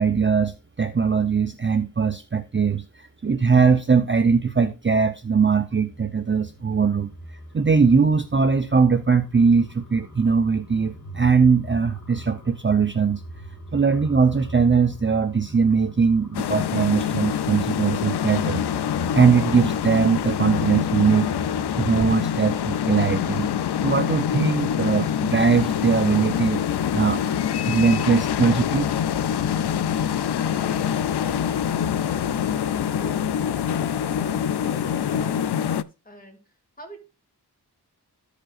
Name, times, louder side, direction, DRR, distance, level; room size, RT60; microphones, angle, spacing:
voice 1, 0.0-7.1 7.5-13.2 13.7-18.6 19.1-21.3 21.8-23.5 23.8-26.6 26.9-27.4 27.6-28.9, right 5 dB, 30° right, 0.6 m, -20 dB
sound 1, 5.5-22.1, right 1 dB, 45° left, 1.6 m, -41 dB
sound 2, 16.3-35.8, left 9 dB, 70° left, 0.5 m, -25 dB
voice 2, 30.3-37.0, right 1 dB, 20° left, 2.5 m, -44 dB
14.5 x 5.0 x 2.4 m
wide cardioid pair, 70°, 41 cm